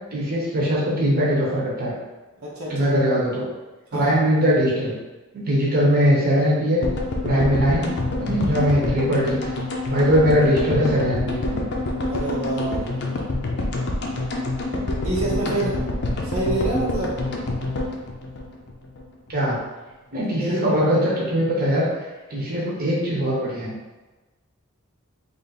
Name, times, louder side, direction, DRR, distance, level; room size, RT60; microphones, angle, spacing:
voice 1, 0.1-1.9 2.7-3.5 3.9-4.9 5.3-6.8 7.2-7.9 8.2-9.5 9.9-11.6 19.3-19.6 20.1-21.9 22.3-23.7, equal, 45° right, -6 dB, 1.0 m, -21 dB
voice 2, 2.4-2.9 3.9-4.1 12.1-12.9 15.0-15.8 16.2-17.3 20.4-20.7, right 2 dB, 70° right, -5 dB, 0.9 m, -27 dB
sound 1, 6.8-19.0 19.3-19.4 19.6-19.7, left 2 dB, 50° left, 0.6 m, -27 dB
3.3 x 2.6 x 4.1 m, 1.2 s
head